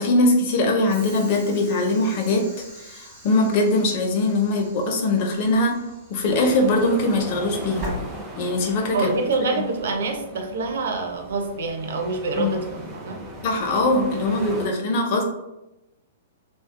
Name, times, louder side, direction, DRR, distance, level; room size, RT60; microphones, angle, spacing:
voice 1, 0.0-2.5 2.8-5.8 6.1-7.9 8.4-9.1 12.3-12.6 13.4-15.2, left 2 dB, 45° left, 2 dB, 0.5 m, -21 dB
Train / Sliding door, 0.9-8.9, equal, 30° right, 1.1 m, -41 dB
sound 1, 6.3-14.7, right 1 dB, 15° right, 0.6 m, -39 dB
voice 2, 8.9-13.2, right 3 dB, 65° right, 4 dB, 0.4 m, -26 dB
2.5 x 2.2 x 2.2 m, 0.95 s
hypercardioid pair, 115°, 0 cm